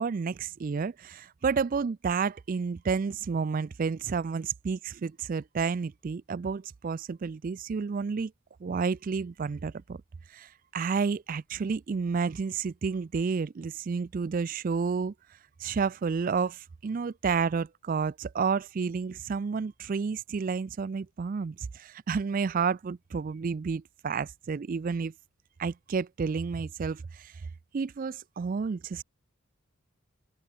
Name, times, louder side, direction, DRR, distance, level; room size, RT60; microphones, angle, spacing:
voice 1, 0.0-8.3 8.6-10.0 10.3-15.1 15.6-25.1 25.6-27.3 27.7-29.0, right 5 dB, 40° right, 0.3 m, -30 dB
head